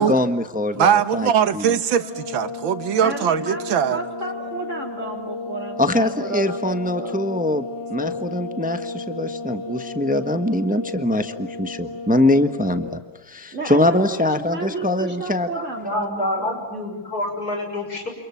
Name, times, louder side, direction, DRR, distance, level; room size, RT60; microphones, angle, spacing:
voice 1, 0.0-1.8 5.8-13.0 13.3-15.5, left 1 dB, 5° right, 8 dB, 1.0 m, -23 dB
voice 2, 0.8-4.0, right 8 dB, 90° right, 11 dB, 2.0 m, -20 dB
sound 1, 2.0-13.0, left 4 dB, 15° left, 2.8 m, -33 dB
voice 3, 3.0-7.2 13.5-16.5, right 3 dB, 40° right, 5 dB, 3.3 m, -32 dB
voice 4, 15.5-18.1, left 1 dB, 50° left, 3 dB, 7.1 m, -27 dB
29.0 x 28.0 x 7.4 m, 1.3 s
omnidirectional pair, 2.1 m